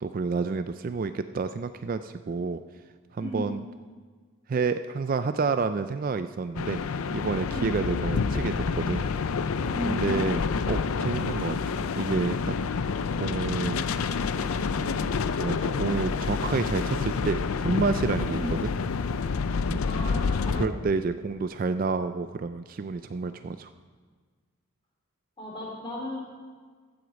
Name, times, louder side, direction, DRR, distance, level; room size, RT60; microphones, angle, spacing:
voice 1, 0.0-2.6 3.1-3.6 4.5-6.8 7.1-9.0 9.8-12.6 13.1-13.8 14.8-15.0 15.4-17.4 17.6-18.7 19.7-19.8 20.5-23.7, right 4 dB, 40° right, 10 dB, 0.3 m, -29 dB
voice 2, 3.2-3.5 7.5-7.7 9.7-10.2 18.3-18.6 19.8-20.8 25.4-26.2, equal, 20° left, -3 dB, 3.1 m, -35 dB
sound 1, 6.5-20.7, left 5 dB, 80° left, 0.5 m, -28 dB
15.0 x 7.9 x 5.2 m, 1.5 s
head